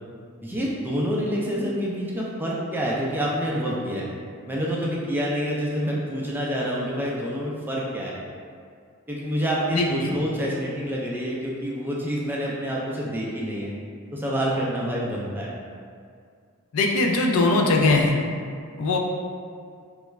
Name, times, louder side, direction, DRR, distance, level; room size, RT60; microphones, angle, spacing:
voice 1, 0.4-4.1 4.5-8.1 9.1-13.7 14.1-15.5, equal, 10° right, -5 dB, 0.3 m, -27 dB
voice 2, 9.7-10.1 16.7-18.2 18.8-19.0, left 3 dB, 65° left, 1 dB, 0.4 m, -20 dB
3.3 x 2.3 x 3.0 m, 2.2 s
head